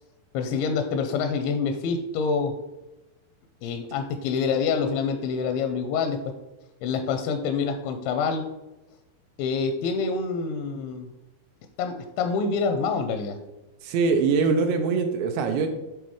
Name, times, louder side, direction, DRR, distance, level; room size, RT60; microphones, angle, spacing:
voice 1, 0.3-2.5 3.6-6.2 6.8-8.4 9.4-11.1 11.8-13.4, left 5 dB, 85° left, 6 dB, 2.8 m, -26 dB
voice 2, 13.8-15.7, right 4 dB, 80° right, 5 dB, 2.7 m, -23 dB
8.6 x 3.8 x 4.8 m, 1.0 s
omnidirectional pair, 5.4 m